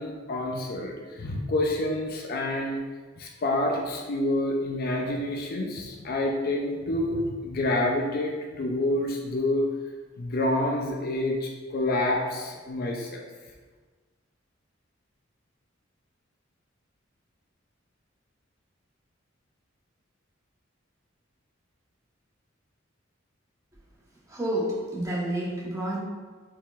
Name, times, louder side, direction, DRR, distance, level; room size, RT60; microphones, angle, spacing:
voice 1, 0.0-2.8 3.2-9.7 10.2-13.2, left 1 dB, 50° left, 1 dB, 0.4 m, -28 dB
voice 2, 24.3-26.0, right 1 dB, 15° right, -7 dB, 1.1 m, -29 dB
4.5 x 3.7 x 2.4 m, 1.4 s
head